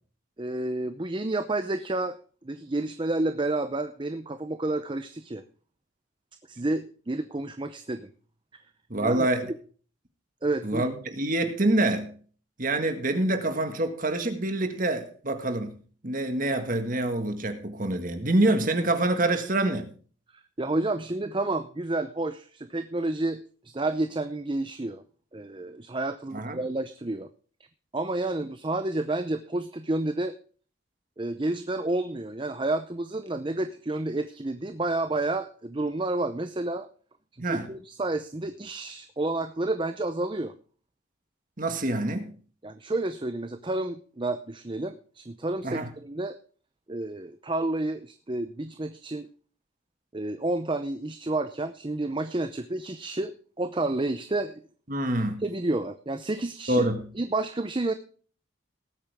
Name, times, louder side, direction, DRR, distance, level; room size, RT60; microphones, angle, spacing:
voice 1, 0.4-2.2 2.4-5.4 6.5-8.1 9.0-9.6 10.4-10.9 20.3-23.4 23.7-25.0 25.3-27.3 27.9-30.3 31.2-36.9 37.5-40.5 42.6-46.3 46.9-49.3 50.1-54.6 55.4-56.9 57.1-57.9, right 2 dB, 25° right, 0.6 m, -30 dB
voice 2, 8.9-9.5 10.6-12.1 12.6-15.8 16.0-19.9 26.3-26.6 37.4-37.7 41.6-42.3 45.6-45.9 54.9-55.4 56.7-57.1, right 1 dB, 40° right, 1.8 m, -26 dB
19.0 x 8.6 x 3.5 m
head